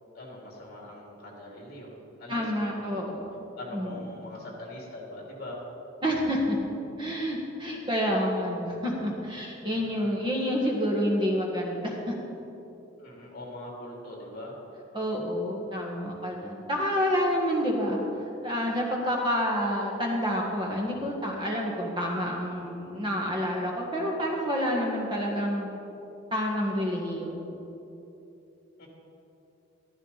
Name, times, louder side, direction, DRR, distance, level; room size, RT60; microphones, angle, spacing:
voice 1, 0.1-3.0 3.5-5.6 9.7-10.2 13.0-14.6 28.8-28.9, left 1 dB, 50° left, -2 dB, 2.9 m, -42 dB
voice 2, 2.3-3.3 3.7-3.9 6.0-6.6 7.0-12.1 14.9-18.0 18.4-25.7 26.3-27.6, equal, 25° right, -2 dB, 1.6 m, -28 dB
13.5 x 13.5 x 4.1 m, 3.0 s
head